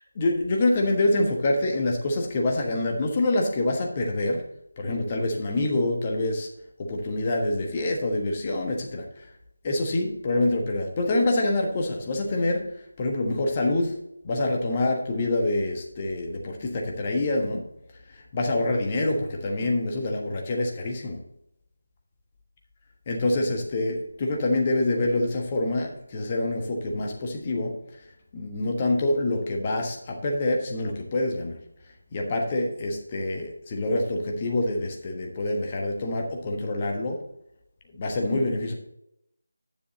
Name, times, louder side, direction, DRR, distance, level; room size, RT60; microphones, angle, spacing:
voice 1, 0.1-4.4 4.8-6.5 6.8-9.3 9.6-12.6 13.0-13.9 14.2-17.7 18.1-21.2 23.1-27.7 28.3-31.6 32.1-37.2 37.9-38.7, left 2 dB, 25° left, 1 dB, 1.3 m, -26 dB
9.9 x 7.0 x 4.0 m, 0.81 s
figure-of-eight pair, 160°, 0 cm